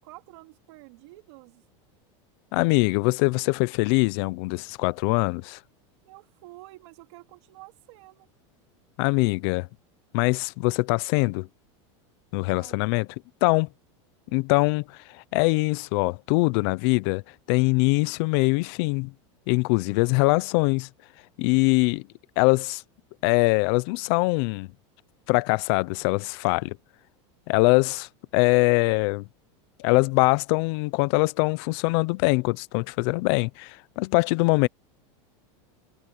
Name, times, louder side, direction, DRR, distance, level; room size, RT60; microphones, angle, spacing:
voice 1, 0.0-1.6 6.0-8.3 12.3-12.8 14.3-14.4, right 20 dB, 65° right, 2.9 m, -49 dB
voice 2, 2.5-5.6 9.0-9.7 10.1-11.5 12.3-13.1 13.4-13.7 14.3-17.2 17.5-19.1 19.5-20.9 21.4-22.0 22.4-22.8 23.2-24.7 25.3-26.8 27.5-29.3 29.8-34.7, left 27 dB, 55° left, 0.7 m, -23 dB
supercardioid pair, 150°, 16 cm